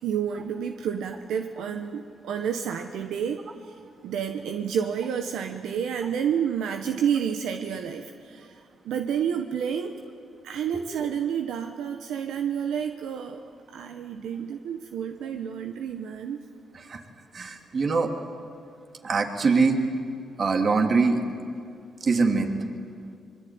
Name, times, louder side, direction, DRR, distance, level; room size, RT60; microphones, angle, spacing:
voice 1, 0.0-3.7 4.0-9.9 10.4-16.4, right 8 dB, 85° right, 6 dB, 1.1 m, -30 dB
voice 2, 17.3-18.1 19.0-19.8 20.4-21.2 22.0-22.5, right 4 dB, 50° right, 4 dB, 3.0 m, -23 dB
24.5 x 22.5 x 9.6 m, 2.3 s
cardioid pair, 75°, 0 cm